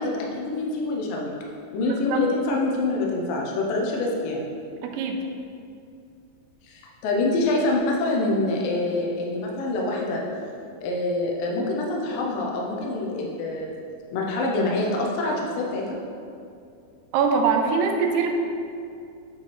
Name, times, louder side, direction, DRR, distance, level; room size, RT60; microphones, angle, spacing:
voice 1, 0.0-1.3 1.7-4.5 6.6-10.2 10.8-13.8 14.1-16.0, left 2 dB, 80° left, -1 dB, 2.4 m, -26 dB
voice 2, 1.8-2.2 4.8-5.2 17.1-18.3, right 5 dB, 80° right, 3 dB, 2.2 m, -23 dB
8.3 x 4.7 x 3.2 m, 2.4 s
omnidirectional pair, 4.2 m